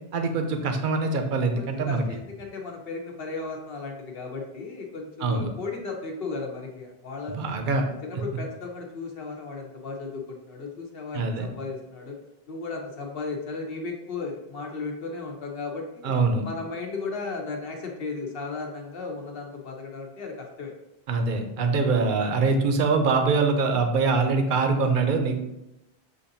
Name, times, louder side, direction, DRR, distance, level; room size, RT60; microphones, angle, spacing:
voice 1, 0.1-2.0 5.2-5.5 7.4-7.8 11.1-11.5 16.0-16.4 21.1-25.4, right 4 dB, 60° right, 5 dB, 0.7 m, -23 dB
voice 2, 1.6-7.4 7.7-12.2 12.5-16.1 16.4-20.7, left 4 dB, 65° left, 1 dB, 0.9 m, -35 dB
6.7 x 2.6 x 2.6 m, 0.90 s
omnidirectional pair, 1.1 m